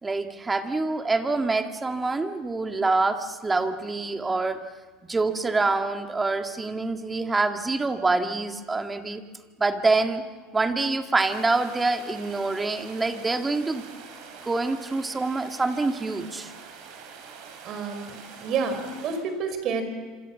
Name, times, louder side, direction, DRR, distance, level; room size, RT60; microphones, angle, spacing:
voice 1, 0.0-4.7 5.0-9.2 9.6-10.2 10.5-13.8 14.4-16.5, right 3 dB, 15° right, 6 dB, 2.0 m, -26 dB
sound 1, 11.2-19.2, right 6 dB, 65° right, 6.9 m, -45 dB
voice 2, 17.6-19.8, right 5 dB, 50° right, 8 dB, 5.3 m, -29 dB
26.5 x 26.0 x 7.3 m, 1.4 s
supercardioid pair, 100°, 0 cm